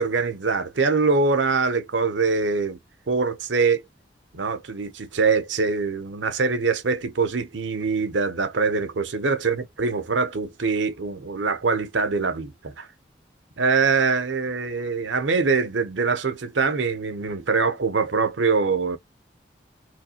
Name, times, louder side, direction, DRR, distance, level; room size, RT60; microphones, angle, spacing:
voice 1, 0.0-2.8 3.1-3.8 4.3-12.9 13.6-19.0, right 4 dB, 90° right, 0.8 m, -23 dB
3.5 x 3.2 x 2.9 m
head